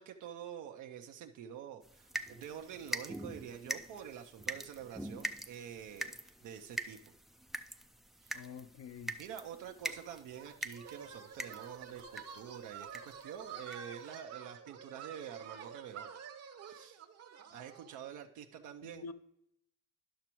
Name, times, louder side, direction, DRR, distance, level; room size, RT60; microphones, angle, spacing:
voice 1, 0.0-7.0 8.2-8.5 9.2-16.1 16.6-17.0 17.5-19.0, right 9 dB, 80° right, 0.6 m, -47 dB
sound 1, 1.8-12.5 12.9-13.2 13.7-13.8 14.1-14.2, right 1 dB, ahead, 0.3 m, -44 dB
voice 2, 8.3-9.2 18.8-19.1, left 5 dB, 60° left, 0.6 m, -47 dB
sound 2, 9.8-18.0, right 7 dB, 55° right, 0.9 m, -49 dB
11.5 x 6.0 x 3.0 m
cardioid pair, 90°, 30 cm